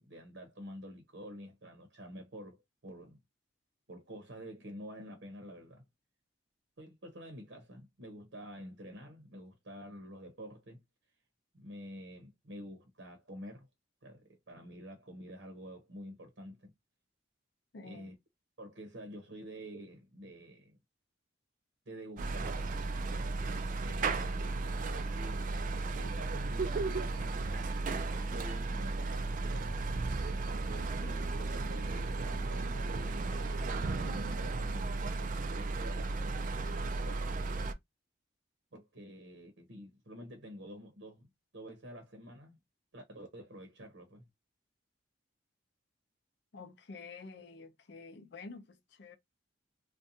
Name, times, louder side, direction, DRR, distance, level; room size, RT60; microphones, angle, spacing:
voice 1, 0.0-3.2 3.9-5.8 6.8-10.8 11.5-13.7 14.0-16.7 17.8-18.1 18.6-20.8 21.9-22.7 23.8-25.6 25.9-27.8 28.2-29.8 30.5-37.4 38.7-41.3 41.5-42.6 42.9-44.3, equal, 65° right, 0.8 m, -49 dB
voice 2, 17.7-18.1 46.5-49.2, left 4 dB, 60° left, 0.5 m, -49 dB
sound 1, 22.2-37.7, right 3 dB, 40° right, 0.3 m, -34 dB
2.5 x 2.2 x 2.7 m
head